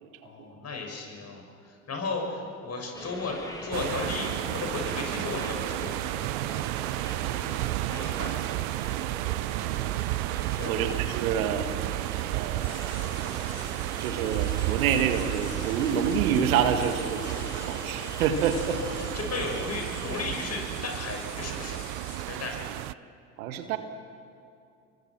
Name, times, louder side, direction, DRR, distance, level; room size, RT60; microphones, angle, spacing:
voice 1, 0.2-5.9 7.0-7.3 7.7-8.4 10.6-11.0 18.7-21.8 22.3-22.9, left 3 dB, 35° left, 1 dB, 6.7 m, -35 dB
sound 1, 2.9-20.2, left 1 dB, 10° left, 5.6 m, -42 dB
sound 2, 3.7-22.9, right 23 dB, 55° right, 0.5 m, -32 dB
voice 2, 10.6-11.7 12.3-12.9 14.0-18.8 23.4-23.8, right 8 dB, 75° right, 7 dB, 1.9 m, -27 dB
sound 3, 12.6-22.3, left 6 dB, 65° left, 4.1 m, -46 dB
29.0 x 23.0 x 6.1 m, 2.5 s
hypercardioid pair, 65°, 43 cm